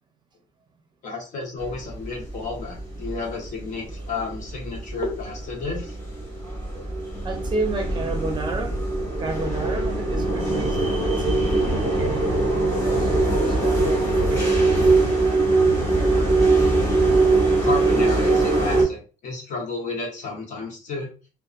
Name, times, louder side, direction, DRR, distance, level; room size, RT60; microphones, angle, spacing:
voice 1, 1.0-6.0 17.6-21.1, left 4 dB, 60° left, 0.9 m, -32 dB
sound 1, 1.6-18.8, right 2 dB, 20° left, 1.3 m, -22 dB
voice 2, 7.2-8.8 9.2-15.0 16.0-16.6, right 3 dB, 30° right, 0.6 m, -32 dB
2.8 x 2.0 x 2.4 m
cardioid pair, 150°, 14 cm